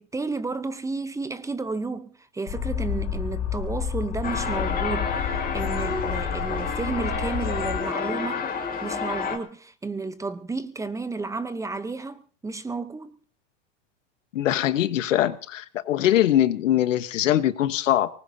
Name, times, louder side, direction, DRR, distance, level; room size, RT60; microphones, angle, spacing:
voice 1, 0.0-8.5 8.8-13.2, right 3 dB, 10° right, 0.7 m, -32 dB
sound 1, 2.5-7.8, left 7 dB, 45° left, 3.7 m, -30 dB
sound 2, 4.2-9.4, left 5 dB, 25° left, 2.3 m, -29 dB
voice 2, 14.3-18.1, left 12 dB, 85° left, 1.1 m, -22 dB
23.5 x 19.5 x 2.7 m
hypercardioid pair, 125°, 37 cm